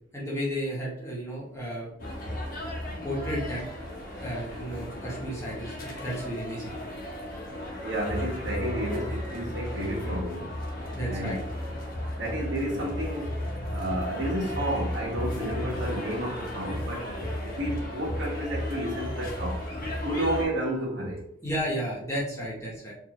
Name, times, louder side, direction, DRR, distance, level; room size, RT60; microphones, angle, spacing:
voice 1, 0.1-1.9 2.9-3.6 4.2-6.7 10.9-11.4 21.4-22.9, equal, 15° left, -5 dB, 1.2 m, -33 dB
sound 1, 2.0-20.4, left 1 dB, 50° left, 1.0 m, -34 dB
voice 2, 7.8-10.5 11.1-11.3 12.2-13.3 13.7-17.1 17.4-19.6 20.0-21.2, right 1 dB, 70° right, -3 dB, 1.4 m, -31 dB
4.5 x 2.7 x 3.1 m, 0.72 s
head